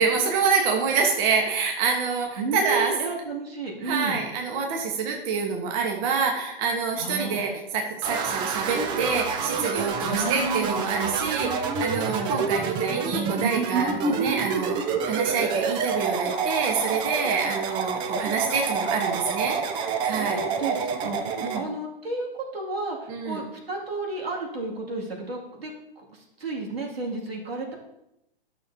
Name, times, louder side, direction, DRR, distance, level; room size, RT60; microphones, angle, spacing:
voice 1, 0.0-2.9 3.8-14.8 15.0-20.4 21.4-21.6 23.1-23.4, right 5 dB, 35° right, 1 dB, 1.3 m, -26 dB
voice 2, 2.4-4.2 7.0-7.4 10.0-10.8 12.0-12.4 20.1-27.7, right 3 dB, 80° right, -2 dB, 2.5 m, -32 dB
sound 1, 8.0-21.6, right 5 dB, 15° right, 0.5 m, -28 dB
12.0 x 6.4 x 2.8 m, 0.86 s
hypercardioid pair, 130°, 29 cm